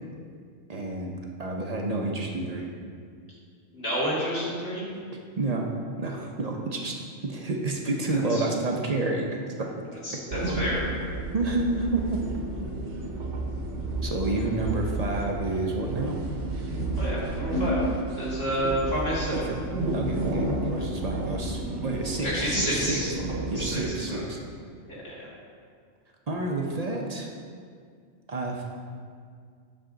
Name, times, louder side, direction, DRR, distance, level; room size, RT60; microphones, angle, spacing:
voice 1, 0.7-1.1 1.4-2.7 5.1-5.7 6.0-6.9 7.2-9.3 9.6-10.0 11.3-12.2 14.0-16.2 19.3-19.6 19.9-23.0 23.5-24.4 26.3-27.3 28.3-28.6, right 2 dB, 40° right, 0 dB, 0.6 m, -29 dB
voice 2, 3.7-4.8 8.1-8.4 10.0-10.9 17.0-17.8 18.2-19.4 22.2-23.1 23.6-24.2 24.9-25.3, equal, 50° left, -7 dB, 2.2 m, -29 dB
sound 1, 10.3-23.8, right 2 dB, 65° right, 1.1 m, -31 dB
7.4 x 6.4 x 3.8 m, 2.1 s
omnidirectional pair, 1.4 m